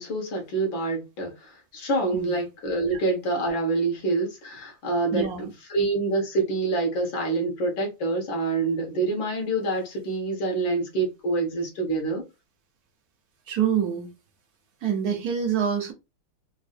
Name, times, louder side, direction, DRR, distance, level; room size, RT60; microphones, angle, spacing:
voice 1, 0.0-12.2, right 3 dB, 65° left, 2.1 m, -26 dB
voice 2, 5.1-5.5 13.5-14.1 14.8-15.9, right 8 dB, 65° right, 0.9 m, -26 dB
4.4 x 2.7 x 2.5 m
omnidirectional pair, 2.4 m